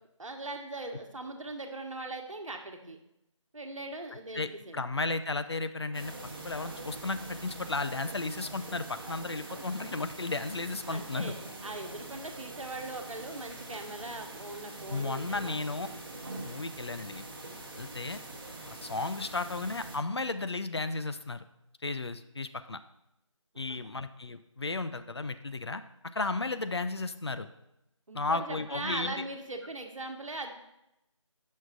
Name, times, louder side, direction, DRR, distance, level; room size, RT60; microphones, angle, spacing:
voice 1, 0.2-3.0 3.5-4.8 10.9-11.4 11.6-15.7 23.7-23.8 28.1-30.5, right 2 dB, 80° right, 4 dB, 1.1 m, -40 dB
voice 2, 4.3-6.1 6.4-11.3 14.9-15.9 16.3-17.3 17.8-18.2 18.7-21.4 21.8-22.8 23.6-27.5 28.1-29.2, left 3 dB, 55° left, 11 dB, 0.4 m, -34 dB
sound 1, 5.9-20.0, right 2 dB, 45° right, 1.0 m, -44 dB
8.0 x 6.3 x 2.4 m, 0.84 s
figure-of-eight pair, 175°, 17 cm